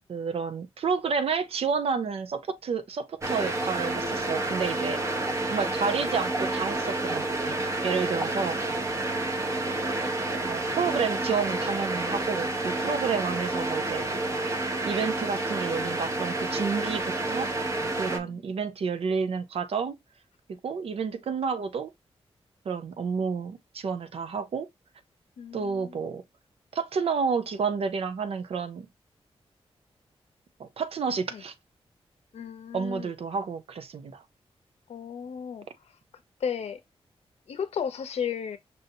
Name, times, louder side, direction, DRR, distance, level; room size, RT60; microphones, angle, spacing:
voice 1, 0.1-5.0 5.5-8.6 10.4-14.1 14.8-17.5 18.0-20.0 20.6-21.9 22.7-24.7 25.5-26.2 26.7-28.9 30.6-31.5 32.7-34.2, right 5 dB, 70° right, 0.6 m, -30 dB
sound 1, 3.2-18.2, right 2 dB, 30° right, 0.8 m, -29 dB
voice 2, 18.1-18.4 25.4-26.0 31.3-31.4 32.3-33.1 34.9-35.7 36.4-36.8 37.5-38.6, left 7 dB, 85° left, 0.6 m, -34 dB
5.5 x 2.7 x 2.6 m
wide cardioid pair, 155°, 10 cm